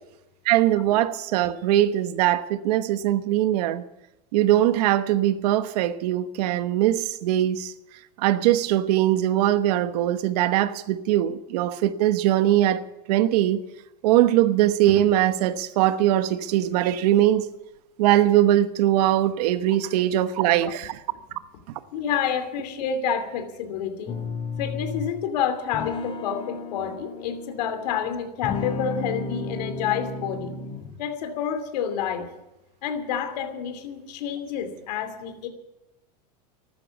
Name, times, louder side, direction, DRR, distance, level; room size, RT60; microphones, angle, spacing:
voice 1, 0.4-3.8 4.3-7.7 8.2-12.8 13.1-13.6 14.0-17.5 18.0-21.0, right 13 dB, 75° right, 1.2 m, -21 dB
voice 2, 21.9-24.2 24.6-30.5 31.0-32.3 32.8-35.5, left 8 dB, 80° left, 2.8 m, -29 dB
sound 1, 24.1-25.2 25.7-28.0 28.4-31.0, left 4 dB, 25° left, 2.6 m, -33 dB
14.5 x 13.0 x 7.2 m
supercardioid pair, 135°, 21 cm